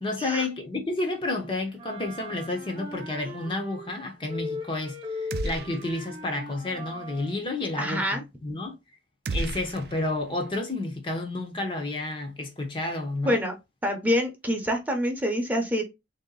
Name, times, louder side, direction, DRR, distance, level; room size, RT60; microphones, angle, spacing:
voice 1, 0.0-8.7 9.3-13.4, left 2 dB, 25° left, 0.7 m, -31 dB
Wind instrument woodwind instrument, 1.8-4.0 4.3-7.4, left 2 dB, 30° right, 1.0 m, -38 dB
sound 1, 5.3-6.2 6.5-6.6 9.2-10.5, right 2 dB, 55° right, 0.4 m, -34 dB
voice 2, 7.8-8.2 13.2-13.5 13.8-15.8, equal, 10° right, 0.7 m, -26 dB
3.5 x 2.7 x 3.8 m
head